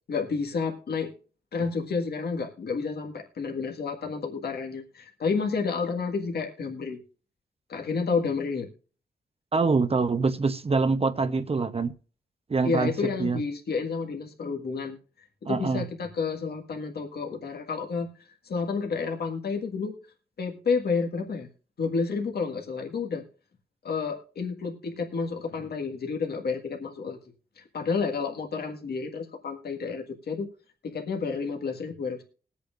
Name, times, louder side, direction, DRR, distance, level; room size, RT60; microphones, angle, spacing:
voice 1, 0.1-1.1 1.5-7.0 7.7-8.7 12.6-15.0 15.4-20.0 20.4-21.5 21.8-23.2 23.8-27.2 27.6-30.5 30.8-32.2, left 5 dB, 85° left, 1.7 m, -30 dB
voice 2, 9.5-11.9 12.5-12.9 13.2-13.4 15.5-15.8, right 4 dB, 40° right, 0.8 m, -25 dB
21.0 x 8.3 x 2.5 m
wide cardioid pair, 100°, 16 cm